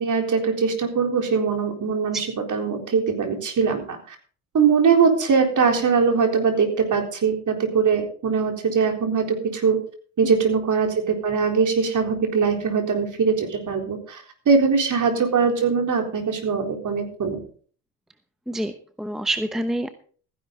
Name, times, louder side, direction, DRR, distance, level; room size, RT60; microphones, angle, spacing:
voice 1, 0.0-4.2 4.5-9.8 10.2-17.4, right 5 dB, 40° right, 4 dB, 4.0 m, -21 dB
voice 2, 18.5-19.9, right 1 dB, ahead, 10 dB, 0.9 m, -27 dB
15.0 x 10.5 x 4.1 m, 0.43 s
supercardioid pair, 85°, 46 cm